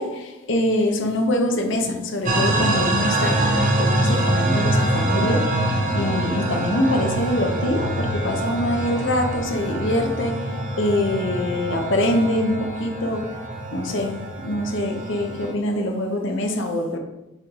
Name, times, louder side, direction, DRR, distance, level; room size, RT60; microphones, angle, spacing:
voice 1, 0.0-13.4 13.7-14.2 14.4-17.0, left 1 dB, 60° left, 4 dB, 1.0 m, -24 dB
sound 1, 2.3-15.5, right 1 dB, 35° right, 0.9 m, -24 dB
7.7 x 3.4 x 4.7 m, 0.98 s
head